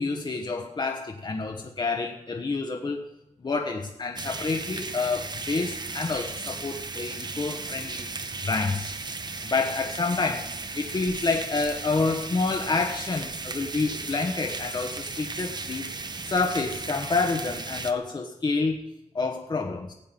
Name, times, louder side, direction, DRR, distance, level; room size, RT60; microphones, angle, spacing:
voice 1, 0.0-3.0 3.4-8.1 8.4-8.9 9.4-15.9 16.3-19.9, left 3 dB, 35° left, 3 dB, 1.0 m, -28 dB
sound 1, 4.2-17.9, right 3 dB, 35° right, 0.8 m, -36 dB
15.5 x 5.7 x 9.1 m, 0.90 s
wide cardioid pair, 120°, 12 cm